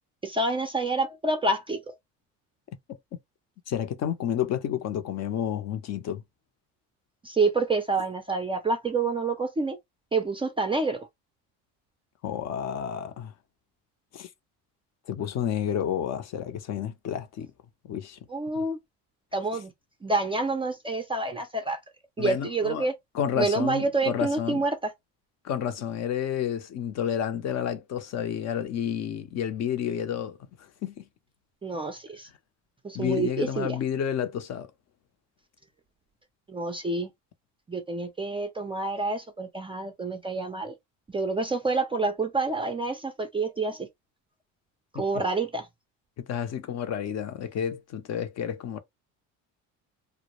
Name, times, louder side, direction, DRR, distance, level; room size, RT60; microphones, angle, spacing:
voice 1, 0.2-1.9 7.2-9.8 10.1-11.1 18.3-18.8 19.3-19.7 20.0-21.8 22.2-22.9 23.4-24.9 31.6-32.3 32.8-33.8 36.5-37.1 37.7-40.7 41.1-43.9 44.9-45.7, right 3 dB, 15° right, 0.3 m, -28 dB
voice 2, 3.7-6.2 12.2-13.3 14.1-14.3 15.1-17.5 17.8-18.2 19.5-19.6 22.2-22.9 23.1-24.6 25.4-31.0 32.9-34.7 44.9-45.0 46.2-48.8, left 9 dB, 45° left, 0.5 m, -30 dB
2.1 x 2.0 x 2.9 m
supercardioid pair, 95°, 37 cm